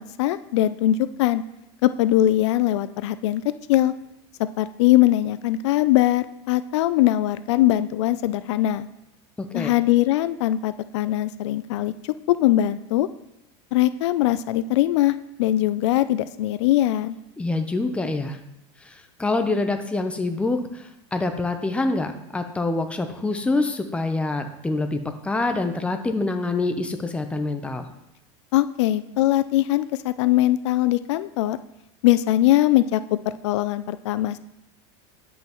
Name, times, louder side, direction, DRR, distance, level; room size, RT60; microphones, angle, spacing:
voice 1, 0.0-1.4 1.8-3.9 4.4-8.9 9.5-13.1 13.7-17.2 28.5-31.6 32.0-34.4, left 14 dB, 80° left, 14 dB, 0.4 m, -21 dB
voice 2, 9.4-9.7 17.4-18.4 18.8-27.9, left 2 dB, 10° left, 6 dB, 0.7 m, -26 dB
10.0 x 5.5 x 3.0 m, 0.87 s
supercardioid pair, 125°, 15 cm